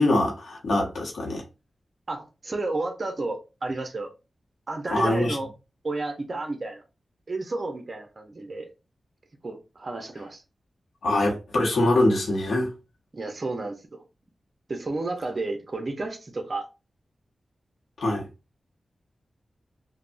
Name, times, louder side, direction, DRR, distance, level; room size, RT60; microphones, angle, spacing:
voice 1, 0.0-1.4 4.9-5.4 11.0-12.7 18.0-18.3, left 1 dB, 85° left, 0.7 m, -23 dB
voice 2, 2.1-4.1 4.7-5.5 5.8-6.8 7.3-8.7 9.4-10.4 13.1-14.0 14.7-16.7, right 2 dB, 40° right, 0.6 m, -31 dB
3.3 x 2.0 x 2.5 m
wide cardioid pair, 85°, 0 cm